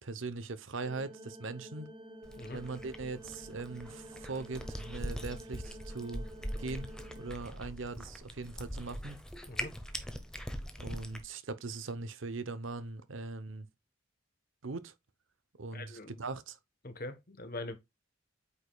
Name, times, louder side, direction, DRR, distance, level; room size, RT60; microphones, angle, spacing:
voice 1, 0.0-1.9 2.5-6.3 6.6-9.2 10.8-13.7 14.6-14.9 15.6-16.6, right 3 dB, 75° right, 0.8 m, -40 dB
sound 1, 0.8-7.3, right 1 dB, 25° right, 1.0 m, -50 dB
Cat, 2.2-11.2, equal, 5° left, 0.8 m, -42 dB
voice 2, 15.7-16.2 16.8-17.8, left 2 dB, 45° left, 1.1 m, -42 dB
8.4 x 5.1 x 2.3 m
head